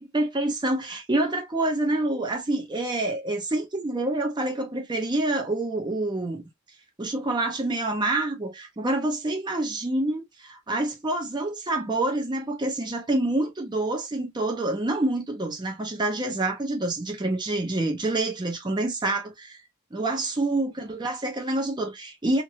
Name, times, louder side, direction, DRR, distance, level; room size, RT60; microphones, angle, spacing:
voice 1, 0.1-6.4 7.0-19.6 19.9-22.4, right 2 dB, 20° right, 0.7 m, -27 dB
2.9 x 2.6 x 2.6 m
head